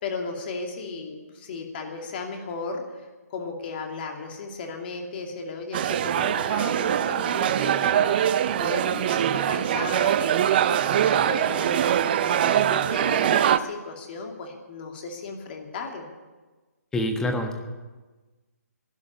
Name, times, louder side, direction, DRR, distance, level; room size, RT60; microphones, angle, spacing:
voice 1, 0.0-8.1 8.6-16.0, left 4 dB, 35° left, 3 dB, 2.6 m, -35 dB
sound 1, 5.7-13.6, right 10 dB, 35° right, 0.5 m, -23 dB
voice 2, 16.9-17.6, left 1 dB, 5° left, 4 dB, 1.4 m, -26 dB
12.5 x 11.0 x 9.7 m, 1.3 s
figure-of-eight pair, 145°, 9 cm